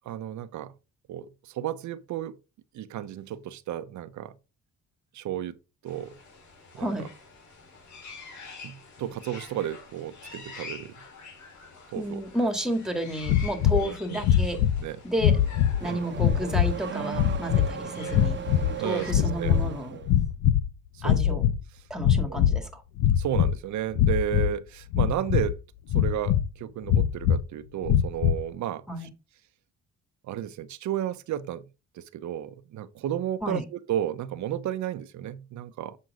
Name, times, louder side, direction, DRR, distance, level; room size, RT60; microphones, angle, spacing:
voice 1, 0.0-0.7 1.1-2.4 2.7-4.3 5.1-5.6 5.8-6.1 6.7-7.0 8.6-11.0 11.9-12.2 13.7-14.2 14.5-15.0 15.9-16.0 18.8-19.6 19.9-20.1 20.9-21.4 22.3-22.4 23.2-25.6 25.9-29.1 30.2-31.7 31.9-36.0, right 11 dB, 70° right, 0.8 m, -33 dB
sound 1, 5.9-19.1, left 4 dB, 65° left, 3.6 m, -47 dB
voice 2, 6.8-7.1 12.0-14.6 15.0-15.4 15.8-18.4 18.8-20.0 21.0-21.4 21.9-22.8 28.9-29.1 33.4-33.6, equal, ahead, 2.0 m, -31 dB
sound 2, 13.3-13.9 14.2-14.8 15.2-15.8 16.2-16.8 17.1-17.7 18.1-18.8 19.1-19.7 20.0-20.7 21.0-21.6 22.0-22.6 23.0-23.6 23.9-24.5 24.9-25.5 25.9-26.5 26.9-27.4 27.8-28.4, left 10 dB, 90° left, 0.7 m, -22 dB
Car / Accelerating revving vroom, 15.1-20.1, right 8 dB, 40° right, 0.9 m, -37 dB
7.7 x 6.2 x 3.7 m
cardioid pair, 90°, 30 cm